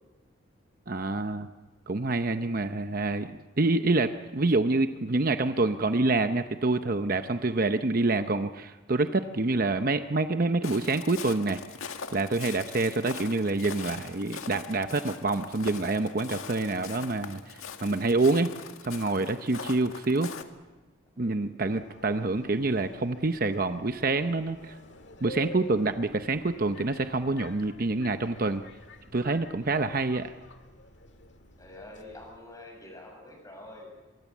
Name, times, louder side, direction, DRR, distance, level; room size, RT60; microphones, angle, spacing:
voice 1, 0.9-1.5 1.9-3.3 3.6-11.6 12.1-18.5 18.8-20.3 21.2-24.8 25.2-28.6 29.1-30.3, right 3 dB, 45° right, 8 dB, 0.7 m, -27 dB
Walk footsteps, 10.6-20.4, left 6 dB, 85° left, 1.9 m, -42 dB
voice 2, 19.2-19.5 21.1-21.4 29.5-29.8 31.6-33.9, left 1 dB, 15° left, 1 dB, 7.5 m, -47 dB
Subway metro underground, 21.6-32.4, left 1 dB, 60° left, 1.8 m, -48 dB
24.5 x 23.0 x 7.3 m, 1.2 s
head